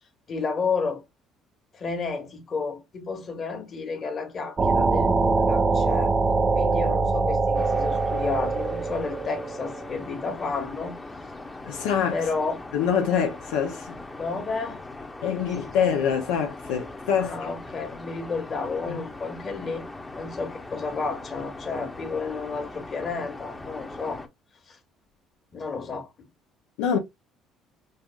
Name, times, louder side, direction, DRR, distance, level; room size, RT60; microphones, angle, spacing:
voice 1, 0.3-1.0 1.7-6.2 6.5-10.9 12.1-12.6 14.1-14.8 17.2-19.8 20.1-24.2 24.7-24.8 25.5-26.1, left 4 dB, 40° left, 1.4 m, -31 dB
sound 1, 4.6-10.0, right 4 dB, 30° right, 0.5 m, -23 dB
sound 2, 7.5-24.3, left 2 dB, 20° left, 0.8 m, -40 dB
voice 2, 11.7-12.2 12.7-14.0 15.2-17.3 18.9-19.0 26.8-27.0, left 7 dB, 90° left, 0.6 m, -25 dB
5.4 x 2.4 x 2.2 m
supercardioid pair, 85°, 0 cm